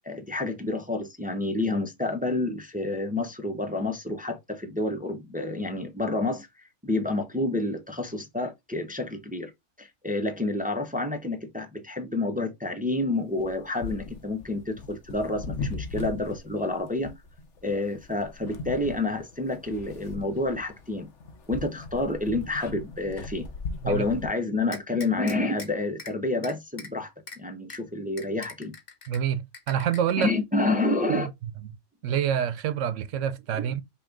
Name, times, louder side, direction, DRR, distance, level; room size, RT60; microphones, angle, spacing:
voice 1, 0.0-6.5 6.8-9.5 9.8-17.1 17.6-21.1 21.5-23.5 23.9-28.7 30.2-31.3 33.5-33.7, left 2 dB, 10° right, 0.5 m, -29 dB
sound 1, 13.4-24.3, left 3 dB, 75° left, 1.1 m, -39 dB
sound 2, 24.7-25.7 26.0-26.1 26.4-26.9 27.3-27.4 27.7-27.8 28.2-29.2 29.5-30.3, left 4 dB, 50° left, 1.1 m, -41 dB
voice 2, 29.1-30.3 31.1-31.3 32.0-33.8, right 9 dB, 80° right, 1.0 m, -27 dB
5.6 x 2.4 x 3.8 m
omnidirectional pair, 1.3 m